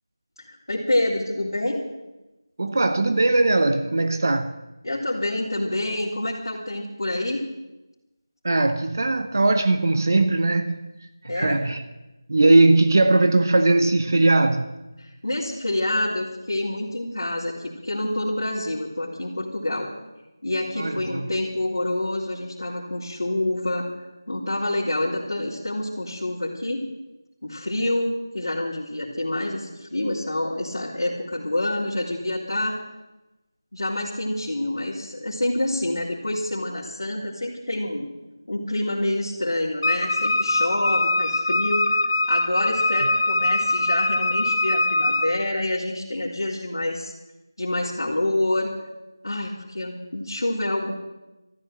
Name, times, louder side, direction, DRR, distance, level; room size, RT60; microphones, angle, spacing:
voice 1, 0.4-1.8 4.8-7.4 11.2-11.6 15.0-19.9 20.4-26.8 27.4-32.8 33.7-38.1 38.5-47.1 47.6-48.7 49.2-51.0, left 1 dB, 70° left, 3.4 m, -27 dB
voice 2, 2.6-4.5 8.4-11.8 12.3-14.7 20.8-21.3, right 2 dB, 45° right, 0.9 m, -20 dB
Wind instrument woodwind instrument, 39.8-45.3, left 2 dB, 50° left, 1.6 m, -22 dB
13.5 x 12.0 x 7.8 m
figure-of-eight pair, 175°, 2 cm